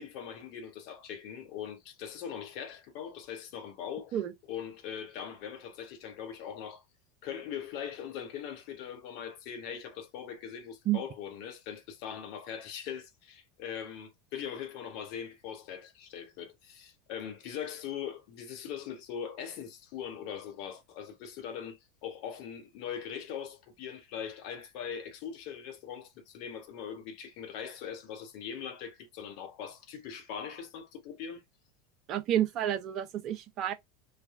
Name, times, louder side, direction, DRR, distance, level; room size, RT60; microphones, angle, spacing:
voice 1, 0.0-4.2 4.5-6.8 7.2-31.4, left 8 dB, 55° left, 0.8 m, -41 dB
voice 2, 32.1-33.7, right 11 dB, 45° right, 0.7 m, -30 dB
3.3 x 2.1 x 2.5 m
hypercardioid pair, 80°, 0 cm